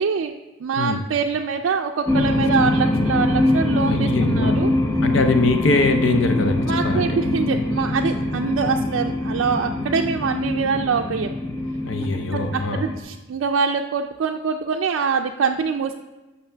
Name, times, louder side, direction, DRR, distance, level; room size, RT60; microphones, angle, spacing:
voice 1, 0.0-4.7 6.7-11.3 12.3-15.9, right 6 dB, 80° right, 3 dB, 0.4 m, -24 dB
sound 1, 2.1-13.0, left 2 dB, 15° left, 0.6 m, -23 dB
voice 2, 3.9-4.7 5.0-7.2 11.8-12.8, left 3 dB, 75° left, 7 dB, 0.6 m, -22 dB
12.5 x 5.7 x 3.3 m, 1.1 s
head